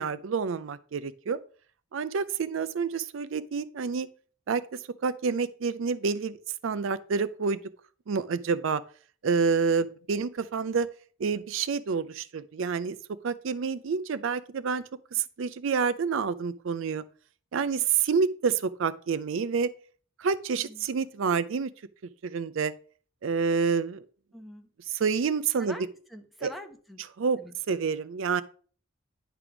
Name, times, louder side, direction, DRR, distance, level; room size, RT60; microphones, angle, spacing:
voice 1, 0.0-1.4 1.9-4.1 4.5-4.6 5.0-6.4 6.6-7.6 8.1-8.8 9.2-10.9 11.2-13.0 13.2-14.8 15.1-17.0 17.5-19.7 20.2-21.7 22.2-22.7 23.2-24.0 24.9-25.8 26.4-26.5 27.2-27.4 27.7-28.4, right 5 dB, 70° right, 0.4 m, -28 dB
voice 2, 20.5-20.9 24.3-24.7 25.6-27.0 27.4-27.5, equal, ahead, 0.8 m, -45 dB
10.0 x 3.4 x 5.9 m
head